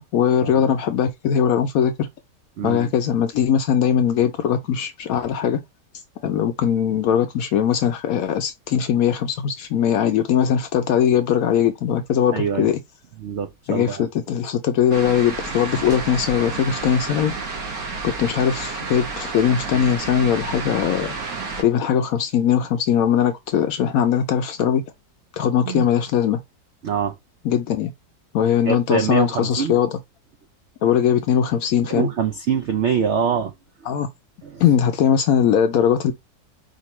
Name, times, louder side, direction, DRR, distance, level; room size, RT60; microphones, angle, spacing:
voice 1, 0.0-2.1 2.6-5.6 6.2-12.8 13.7-17.3 18.0-21.1 21.6-24.8 25.3-26.4 27.4-27.9 28.3-30.0 30.8-32.1 33.9-34.1 34.6-36.1, left 8 dB, 70° left, 0.9 m, -20 dB
voice 2, 2.6-2.9 12.3-12.7 13.2-14.1 25.7-25.8 26.8-27.1 28.6-29.8 31.9-33.5 34.4-34.6, right 7 dB, 85° right, 0.6 m, -24 dB
sound 1, 14.9-21.6, right 4 dB, 60° right, 1.5 m, -30 dB
5.0 x 2.6 x 3.0 m
omnidirectional pair, 1.8 m